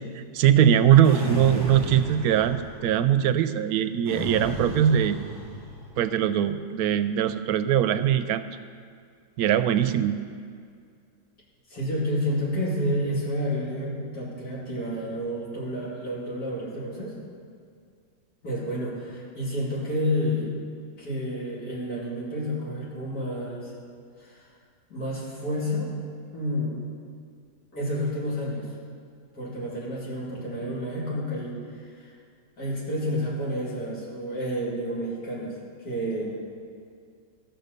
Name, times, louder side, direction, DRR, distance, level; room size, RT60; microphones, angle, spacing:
voice 1, 0.3-5.2 6.0-8.5 9.4-10.2, right 10 dB, 75° right, 11 dB, 1.0 m, -21 dB
sound 1, 1.0-2.9 4.1-5.9, equal, 40° left, 3.6 m, -34 dB
voice 2, 11.7-17.1 18.4-20.5 21.0-23.7 24.2-24.5 24.9-25.9 26.3-26.8 27.7-28.7 29.3-32.1 32.6-35.5 35.8-36.4, equal, 65° left, -5 dB, 3.1 m, -30 dB
13.5 x 6.3 x 6.6 m, 2.3 s
omnidirectional pair, 1.7 m